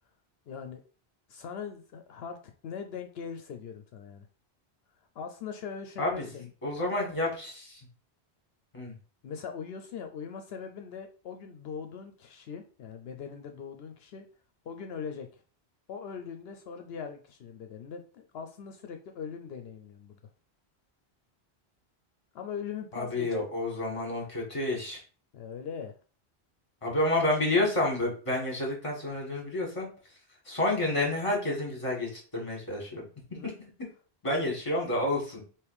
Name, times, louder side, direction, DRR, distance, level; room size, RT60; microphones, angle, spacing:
voice 1, 0.5-0.8 1.3-2.4 2.6-4.3 5.2-6.5 6.8-7.0 9.2-14.3 14.6-15.4 15.9-20.2 22.3-23.4 25.3-26.0 33.3-33.5, left 6 dB, 70° left, 6 dB, 0.8 m, -40 dB
voice 2, 6.0-6.3 6.6-7.8 8.7-8.9 22.9-25.0 26.8-29.9 30.4-33.0 33.4-33.5 34.2-35.4, left 2 dB, 30° left, -1 dB, 1.6 m, -29 dB
3.4 x 3.0 x 4.7 m, 0.39 s
omnidirectional pair, 1.1 m